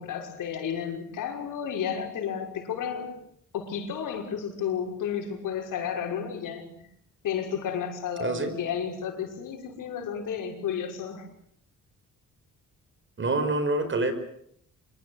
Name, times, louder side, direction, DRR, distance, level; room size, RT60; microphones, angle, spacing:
voice 1, 0.0-3.2 3.5-6.8 7.2-11.3, left 8 dB, 85° left, 3 dB, 6.2 m, -32 dB
voice 2, 8.2-8.6 13.2-14.1, right 2 dB, 40° right, 11 dB, 5.5 m, -26 dB
26.0 x 23.5 x 8.3 m, 0.69 s
cardioid pair, 95°, 31 cm